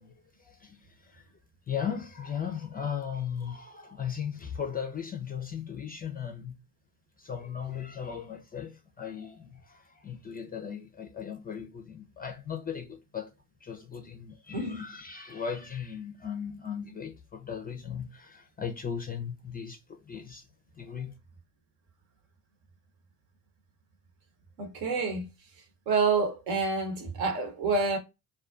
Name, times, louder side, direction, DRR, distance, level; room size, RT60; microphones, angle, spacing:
voice 1, 0.0-1.3 1.7-6.6 7.2-13.3 13.6-20.5 20.7-21.1, left 7 dB, 20° left, 0.4 m, -37 dB
voice 2, 24.6-25.3 25.9-28.0, right 4 dB, 65° right, 1.0 m, -28 dB
2.4 x 2.2 x 2.4 m
hypercardioid pair, 60°, 46 cm